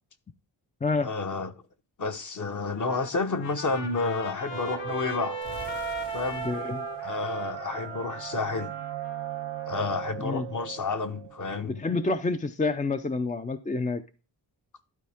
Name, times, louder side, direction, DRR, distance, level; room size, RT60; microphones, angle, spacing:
voice 1, 1.0-1.5 2.0-5.4 6.1-6.5 7.0-8.7 9.7-11.8, left 3 dB, 40° left, 1.1 m, -30 dB
Trumpet, 2.6-10.0, left 5 dB, 85° left, 1.2 m, -41 dB
sound 1, 4.5-11.8, right 14 dB, 80° right, 0.5 m, -37 dB
sound 2, 5.4-8.3, left 3 dB, 65° left, 1.9 m, -49 dB
voice 2, 6.4-6.9 10.2-10.5 11.6-14.0, left 3 dB, 20° left, 0.4 m, -28 dB
12.0 x 4.3 x 3.5 m
wide cardioid pair, 95°, 44 cm